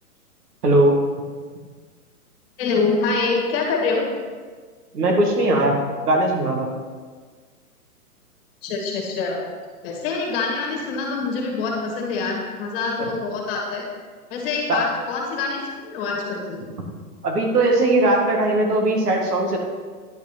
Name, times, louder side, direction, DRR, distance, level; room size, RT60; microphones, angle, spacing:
voice 1, 0.6-0.9 4.9-5.8 6.0-6.7 14.7-14.8 17.2-19.6, right 2 dB, 80° right, 1 dB, 2.0 m, -19 dB
voice 2, 2.6-4.1 8.6-9.4 9.8-13.9 14.3-16.6, left 4 dB, 35° left, -1 dB, 1.9 m, -25 dB
10.0 x 5.2 x 4.3 m, 1.5 s
hypercardioid pair, 145°, 46 cm